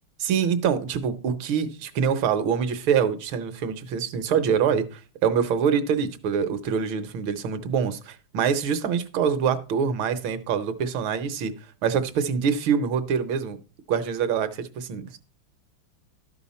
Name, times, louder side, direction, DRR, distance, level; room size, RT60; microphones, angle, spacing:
voice 1, 0.2-11.5 11.8-13.6 13.9-15.2, right 7 dB, 70° right, 1.6 m, -25 dB
12.5 x 5.6 x 4.2 m
omnidirectional pair, 2.4 m